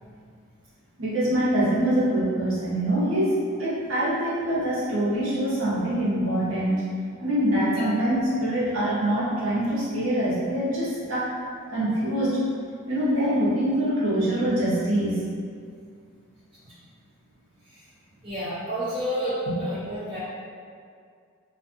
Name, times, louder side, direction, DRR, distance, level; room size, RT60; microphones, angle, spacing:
voice 1, 1.0-6.8 7.2-11.3 11.7-12.4 12.9-15.3 19.5-19.6, right 1 dB, 70° right, -10 dB, 0.8 m, -24 dB
voice 2, 18.2-20.2, equal, 25° right, -13 dB, 0.9 m, -29 dB
2.4 x 2.4 x 2.6 m, 2.2 s
head